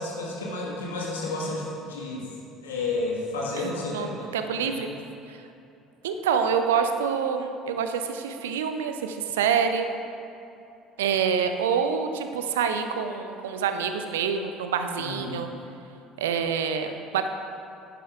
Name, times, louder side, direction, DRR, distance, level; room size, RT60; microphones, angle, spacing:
voice 1, 0.0-2.3 2.6-4.2 4.6-4.9 15.0-15.5, left 2 dB, 75° left, -3 dB, 1.5 m, -31 dB
voice 2, 3.6-4.1 4.3-4.9 5.3-5.4 6.0-9.9 11.0-15.5 16.2-17.3, right 7 dB, 70° right, 7 dB, 0.5 m, -26 dB
10.5 x 10.0 x 2.5 m, 2.7 s
figure-of-eight pair, 60°, 0 cm